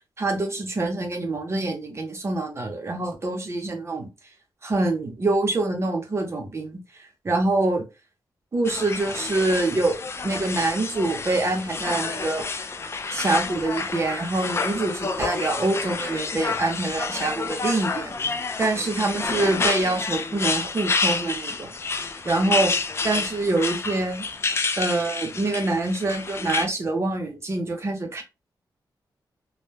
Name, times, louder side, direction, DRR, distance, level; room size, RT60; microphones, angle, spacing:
voice 1, 0.2-4.1 4.6-7.8 8.5-10.0 10.2-12.4 13.1-18.1 18.6-21.7 22.2-22.8 23.0-24.3 24.8-28.2, right 2 dB, 35° right, 0.7 m, -25 dB
sound 1, 8.6-26.7, left 4 dB, 35° left, 0.3 m, -29 dB
2.1 x 2.1 x 3.1 m
wide cardioid pair, 105°, 8 cm